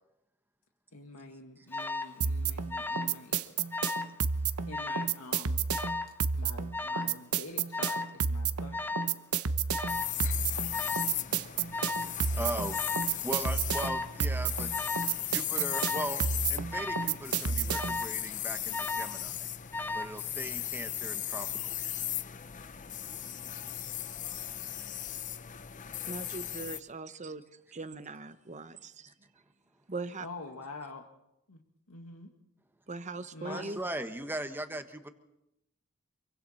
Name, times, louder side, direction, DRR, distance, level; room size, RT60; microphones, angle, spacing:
voice 1, 0.9-3.5 4.7-5.6 6.3-9.0 23.2-23.9 30.2-31.1 31.5-31.6 31.9-32.3 33.3-33.8, left 3 dB, 85° left, 2 dB, 1.9 m, -46 dB
Alarm, 1.7-2.1 2.7-3.2 3.5-4.1 4.7-5.1 5.7-6.2 6.7-7.2 7.7-8.2 8.7-9.1 9.7-10.1 10.7-11.1 11.7-12.2 12.7-13.2 13.7-14.1 14.7-15.1 15.7-16.2 16.7-17.1 17.7-18.2 18.7-19.2 19.7-20.2, left 3 dB, 10° left, 1.0 m, -35 dB
sound 1, 2.2-18.1, right 6 dB, 85° right, 1.0 m, -31 dB
sound 2, 9.9-26.8, left 11 dB, 35° left, 0.8 m, -37 dB
voice 2, 12.3-12.8 13.2-14.7 15.2-16.2 16.5-19.5 19.9-21.5 33.5-35.1, right 1 dB, 10° right, 7 dB, 1.4 m, -38 dB
voice 3, 26.1-27.4 27.7-29.1 29.9-30.3 32.9-33.9, right 3 dB, 35° right, 12 dB, 1.0 m, -40 dB
27.0 x 23.5 x 4.4 m, 0.86 s
head